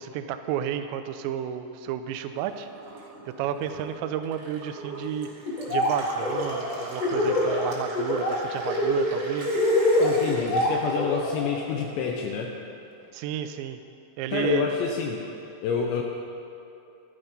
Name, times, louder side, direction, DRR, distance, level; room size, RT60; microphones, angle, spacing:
voice 1, 0.0-2.7 3.4-5.3 5.7-9.6 13.1-13.8 14.2-14.7, right 9 dB, 90° right, 9 dB, 2.5 m, -31 dB
Gurgling / Water tap faucet / Sink (filling or washing), 2.3-11.8 12.1-13.0, right 1 dB, 40° right, 2.8 m, -41 dB
Laughter, 5.5-5.9 6.2-7.6 7.9-8.3 8.6-11.5, left 1 dB, 40° left, 2.7 m, -24 dB
voice 2, 10.0-12.5 14.3-15.2 15.6-16.0, left 6 dB, 75° left, 1 dB, 2.8 m, -28 dB
14.5 x 12.5 x 5.3 m, 2.7 s
omnidirectional pair, 5.8 m